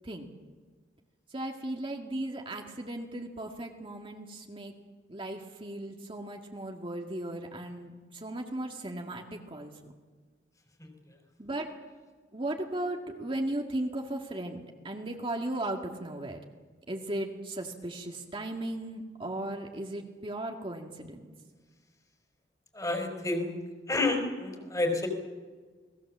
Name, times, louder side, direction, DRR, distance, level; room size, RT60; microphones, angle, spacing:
voice 1, 1.3-4.7 5.1-9.9 11.4-11.7 12.3-16.4 16.9-21.2, right 1 dB, 30° right, 1 dB, 2.0 m, -36 dB
voice 2, 22.7-23.6 23.9-25.1, left 2 dB, 20° left, 4 dB, 4.2 m, -29 dB
29.5 x 20.0 x 7.4 m, 1.5 s
head